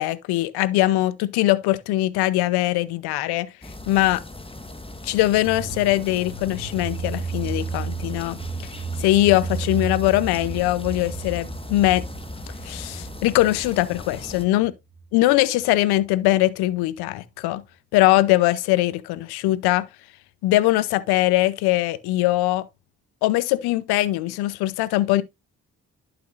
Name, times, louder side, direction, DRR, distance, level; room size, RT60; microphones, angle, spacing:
voice 1, 0.0-3.5 3.9-4.2 5.0-8.4 9.0-12.1 12.6-14.7 15.1-17.6 17.9-19.9 20.4-22.7 23.2-25.2, left 16 dB, 85° left, 0.7 m, -21 dB
sound 1, 3.6-14.5, left 1 dB, 15° left, 1.5 m, -38 dB
sound 2, 5.4-15.3 15.6-15.7, right 4 dB, 85° right, 2.9 m, -34 dB
11.5 x 6.1 x 2.5 m
hypercardioid pair, 40°, 38 cm